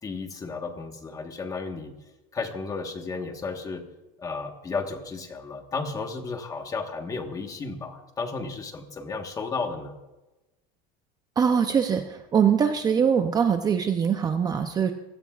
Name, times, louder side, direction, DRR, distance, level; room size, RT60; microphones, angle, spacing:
voice 1, 0.0-1.9 2.3-3.9 4.2-10.0, left 4 dB, 15° left, 5 dB, 1.4 m, -33 dB
voice 2, 11.4-14.9, right 7 dB, 20° right, 6 dB, 0.6 m, -23 dB
24.5 x 16.5 x 2.4 m, 1.1 s
cardioid pair, 160°, 20 cm